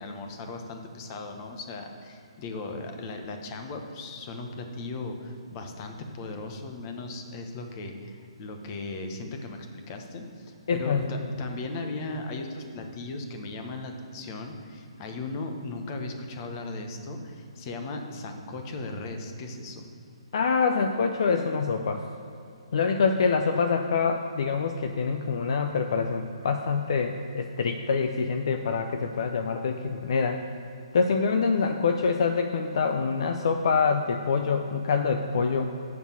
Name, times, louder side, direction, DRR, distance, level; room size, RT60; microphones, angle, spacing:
voice 1, 0.0-19.9, left 2 dB, 35° left, 4 dB, 1.1 m, -37 dB
voice 2, 10.7-11.1 20.3-22.0 22.7-30.4 30.9-35.7, left 5 dB, 60° left, 5 dB, 0.6 m, -25 dB
7.1 x 6.1 x 7.2 m, 2.5 s
figure-of-eight pair, 135°, 3 cm